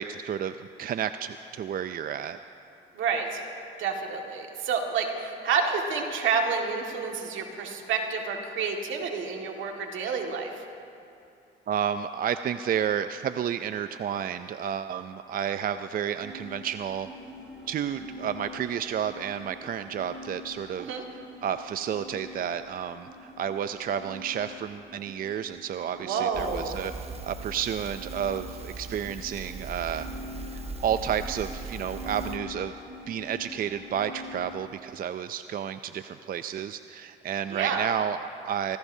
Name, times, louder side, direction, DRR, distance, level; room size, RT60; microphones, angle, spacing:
voice 1, 0.0-2.4 11.7-17.1 17.7-21.0 21.4-26.9 27.2-30.1 30.8-32.7 33.1-38.8, right 9 dB, 45° right, 10 dB, 0.4 m, -31 dB
voice 2, 3.0-3.4 3.8-10.5 20.8-21.0 26.0-26.8 37.5-37.9, right 5 dB, 80° right, 1 dB, 1.9 m, -29 dB
sound 1, 16.2-34.6, left 1 dB, 5° right, 3.7 m, -45 dB
Crackle, 26.3-32.4, right 3 dB, 30° right, 1.0 m, -40 dB
25.0 x 15.0 x 2.7 m, 2.6 s
cardioid pair, 90°, 20 cm